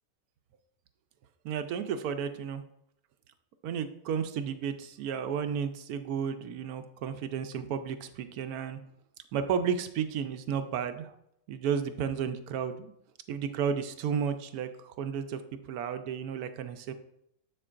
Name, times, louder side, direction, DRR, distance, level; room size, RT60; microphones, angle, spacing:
voice 1, 1.4-2.6 3.6-8.8 9.3-11.1 11.5-12.9 13.3-15.4 15.7-16.9, right 7 dB, 80° right, 9 dB, 1.0 m, -33 dB
7.4 x 6.6 x 2.5 m, 0.76 s
omnidirectional pair, 1.6 m